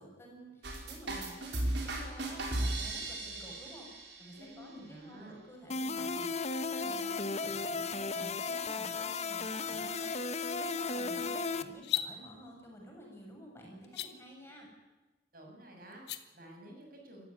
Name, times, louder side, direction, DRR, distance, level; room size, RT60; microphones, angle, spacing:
voice 1, 0.0-3.9 4.2-14.7, equal, 15° left, -1 dB, 6.8 m, -51 dB
sound 1, 0.6-4.3, right 1 dB, 75° right, 4.7 m, -36 dB
voice 2, 4.3-5.4 15.3-17.2, right 1 dB, 50° right, 1 dB, 6.7 m, -51 dB
sound 2, 5.7-11.6, left 4 dB, 35° left, 1.0 m, -35 dB
sound 3, 11.7-12.1 13.8-14.1 15.9-16.2, left 12 dB, 60° left, 1.5 m, -33 dB
27.0 x 15.0 x 9.8 m, 1.1 s
head